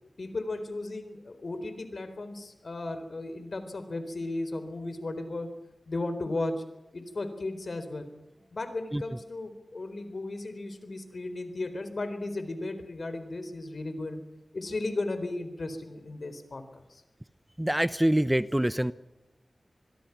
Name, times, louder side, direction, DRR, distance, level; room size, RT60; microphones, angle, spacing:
voice 1, 0.2-5.5 5.9-6.5 6.9-8.1 8.5-14.2 14.5-17.0, left 2 dB, 65° left, 10 dB, 4.0 m, -35 dB
voice 2, 17.6-18.9, right 1 dB, 15° right, 16 dB, 0.8 m, -25 dB
26.0 x 21.5 x 6.0 m, 0.98 s
wide cardioid pair, 55°, 0 cm